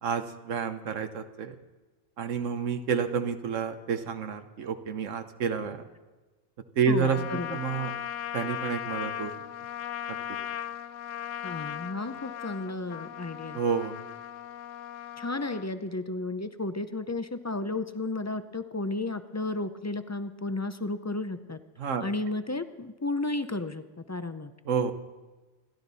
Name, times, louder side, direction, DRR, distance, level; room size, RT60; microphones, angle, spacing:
voice 1, 0.0-1.5 2.2-5.8 6.8-7.9 8.3-9.3 10.1-10.2 13.5-14.0 21.8-22.1 24.7-24.9, right 6 dB, 90° right, 8 dB, 1.3 m, -29 dB
voice 2, 6.9-7.6 11.4-13.6 15.2-21.6 22.0-24.5, left 2 dB, 25° left, 10 dB, 0.3 m, -33 dB
Trumpet, 7.0-15.7, left 11 dB, 80° left, 1.0 m, -37 dB
28.0 x 12.0 x 4.1 m, 1.2 s
omnidirectional pair, 1.3 m